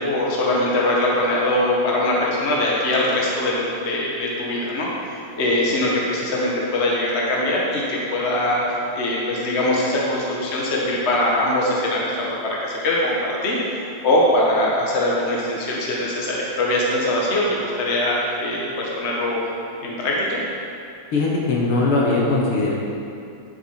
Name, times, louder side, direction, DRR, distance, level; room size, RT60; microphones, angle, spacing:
voice 1, 0.0-19.4 19.8-20.4, left 1 dB, 40° left, -4 dB, 1.0 m, -22 dB
voice 2, 21.1-22.7, left 3 dB, 55° left, -4 dB, 1.8 m, -20 dB
9.6 x 8.1 x 4.6 m, 2.6 s
omnidirectional pair, 3.4 m